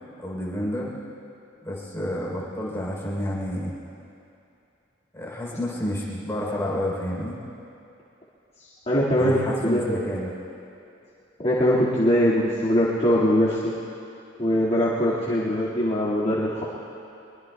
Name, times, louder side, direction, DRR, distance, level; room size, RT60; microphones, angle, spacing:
voice 1, 0.2-0.9 1.6-3.7 5.1-7.4 9.2-10.3 12.2-12.3, left 1 dB, 15° left, -4 dB, 3.6 m, -30 dB
voice 2, 8.6-10.0 11.4-13.7 14.4-16.6, equal, 35° left, -9 dB, 2.1 m, -22 dB
24.5 x 22.5 x 2.3 m, 2.7 s
head